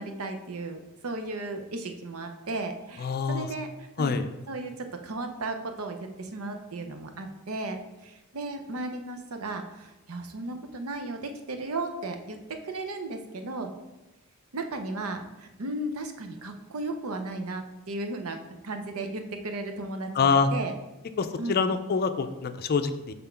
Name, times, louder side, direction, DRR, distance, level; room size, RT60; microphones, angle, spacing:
voice 1, 0.0-4.2 4.5-13.7 14.5-20.7 21.4-21.7, right 2 dB, 90° right, 6 dB, 0.8 m, -35 dB
voice 2, 3.0-3.5 4.0-4.3 20.1-20.5 21.2-23.1, left 5 dB, 45° left, 9 dB, 0.4 m, -25 dB
5.9 x 3.7 x 5.6 m, 1.0 s
head